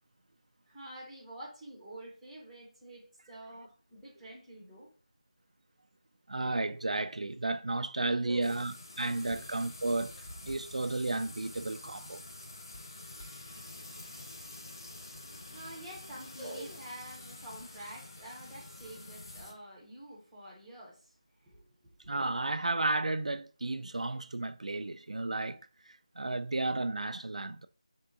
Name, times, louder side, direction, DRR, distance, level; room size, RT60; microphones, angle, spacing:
voice 1, 0.7-4.9 8.2-8.5 9.1-9.4 15.5-21.1 21.4-21.6 21.8-21.9, right 1 dB, 5° right, 0.7 m, -47 dB
voice 2, 6.3-10.2 10.4-12.2 22.1-27.7, right 2 dB, 75° right, 0.4 m, -33 dB
sound 1, 8.4-19.5, left 2 dB, 35° left, 0.7 m, -48 dB
3.6 x 3.6 x 3.9 m
figure-of-eight pair, 175°, 4 cm